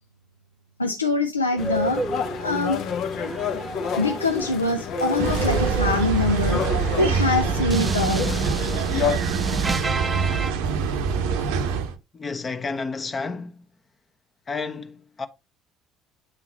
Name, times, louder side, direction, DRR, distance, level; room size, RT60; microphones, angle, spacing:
voice 1, 0.8-2.0 2.4-2.8 4.0-6.6 7.0-8.3, left 2 dB, 90° left, 0.4 m, -24 dB
sound 1, 1.5-2.7 3.1-10.5, right 3 dB, 20° right, 0.4 m, -32 dB
sound 2, 1.6-9.2, left 7 dB, 60° left, 0.9 m, -30 dB
sound 3, 5.2-11.9, right 6 dB, 70° right, 0.7 m, -25 dB
voice 2, 12.1-13.6 14.5-15.3, left 4 dB, 30° left, 1.0 m, -31 dB
8.8 x 3.7 x 2.9 m
figure-of-eight pair, 55°, 0 cm